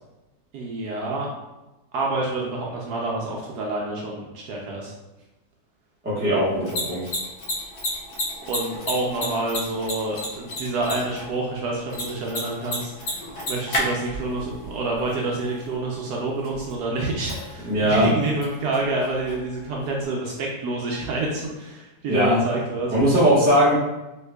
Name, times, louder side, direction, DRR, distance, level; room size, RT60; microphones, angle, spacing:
voice 1, 0.5-1.3 1.9-4.9 8.4-22.9, right 2 dB, 70° right, -2 dB, 1.0 m, -28 dB
voice 2, 6.0-7.1 17.6-18.1 22.1-22.4 22.9-23.7, equal, 5° right, -9 dB, 0.7 m, -19 dB
Mechanisms, 6.4-20.1, equal, 65° left, 1.4 m, -34 dB
3.4 x 3.1 x 2.2 m, 1.0 s
omnidirectional pair, 1.9 m